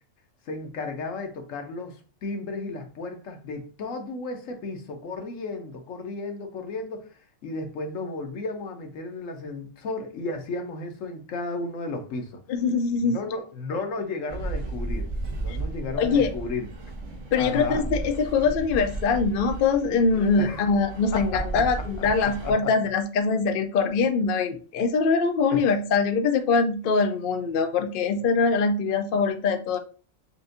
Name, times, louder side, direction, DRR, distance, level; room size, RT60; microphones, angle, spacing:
voice 1, 0.5-12.4 13.0-15.0 15.4-16.7 17.4-17.9 20.4-20.7 21.1-22.7 25.5-25.6, left 3 dB, 85° left, 1.2 m, -34 dB
voice 2, 12.5-13.2 15.5-15.6 16.0-16.3 17.3-29.8, left 4 dB, 55° left, 0.6 m, -23 dB
sound 1, 14.3-22.5, right 2 dB, 75° right, 1.4 m, -34 dB
6.6 x 2.6 x 2.5 m
omnidirectional pair, 1.3 m